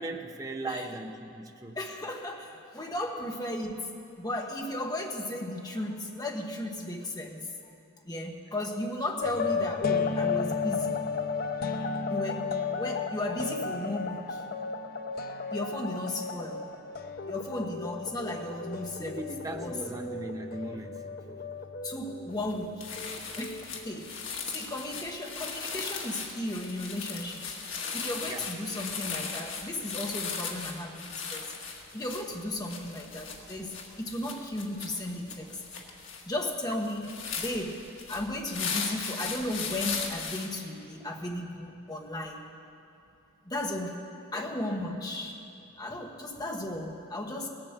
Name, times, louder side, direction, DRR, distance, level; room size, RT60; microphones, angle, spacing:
voice 1, 0.0-1.8 19.0-21.5 28.3-28.5 44.3-44.5, right 2 dB, 15° right, 4 dB, 0.7 m, -38 dB
voice 2, 1.7-3.9 4.2-7.5 8.0-11.0 12.1-14.4 15.5-16.7 17.3-19.8 21.8-22.9 23.4-27.5 27.9-31.5 31.9-35.6 36.3-42.4 43.4-44.0 44.3-45.4 45.8-47.5, left 1 dB, 20° left, 1 dB, 1.2 m, -35 dB
sound 1, 9.2-24.2, left 5 dB, 45° left, 0.6 m, -34 dB
sound 2, 22.4-22.5 22.8-40.5, left 5 dB, 65° left, 1.7 m, -37 dB
18.0 x 8.9 x 7.3 m, 2.6 s
head